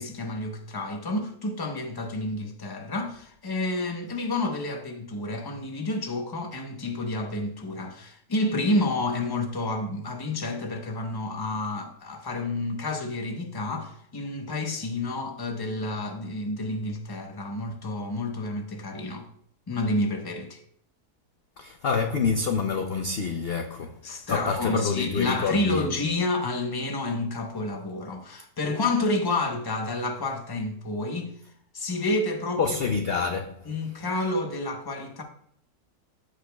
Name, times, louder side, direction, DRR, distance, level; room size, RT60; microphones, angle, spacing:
voice 1, 0.0-19.3 19.7-20.6 24.0-31.3 31.7-32.6 33.7-35.2, left 2 dB, 20° left, 0.7 m, -29 dB
voice 2, 21.6-25.9 32.6-33.7, left 5 dB, 60° left, 0.6 m, -27 dB
14.5 x 5.0 x 2.3 m
omnidirectional pair, 1.7 m